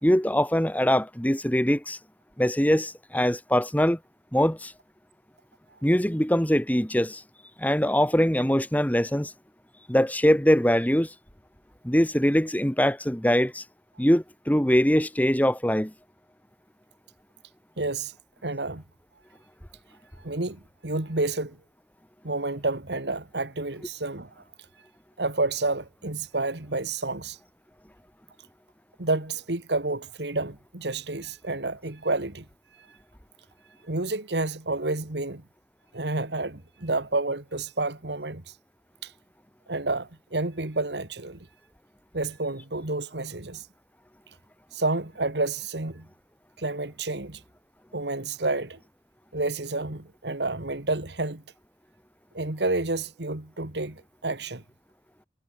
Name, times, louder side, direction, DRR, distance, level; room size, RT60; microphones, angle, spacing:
voice 1, 0.0-2.0 2.4-4.0 4.3-4.7 5.8-7.2 7.6-9.3 9.9-11.1 11.8-13.6 14.0-15.9, equal, 10° left, 1.9 m, -22 dB
voice 2, 17.8-18.1 18.4-18.8 20.2-21.6 22.2-24.3 25.2-27.4 29.0-32.5 33.9-35.4 35.9-38.4 39.0-39.1 39.7-41.5 42.1-43.6 44.7-46.1 46.6-47.4 47.9-48.8 49.3-51.4 52.3-54.6, right 2 dB, 70° right, 2.1 m, -29 dB
head